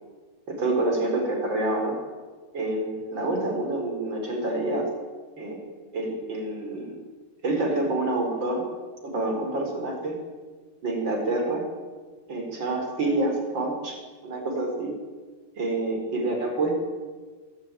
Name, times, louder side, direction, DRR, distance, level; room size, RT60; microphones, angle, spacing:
voice 1, 0.5-2.0 2.5-4.9 5.4-5.6 5.9-6.9 7.4-8.6 9.0-10.1 10.8-11.7 12.3-14.0 14.2-14.9 15.6-16.7, right 2 dB, 30° right, 2 dB, 5.2 m, -27 dB
24.0 x 14.5 x 9.3 m, 1.4 s
omnidirectional pair, 4.6 m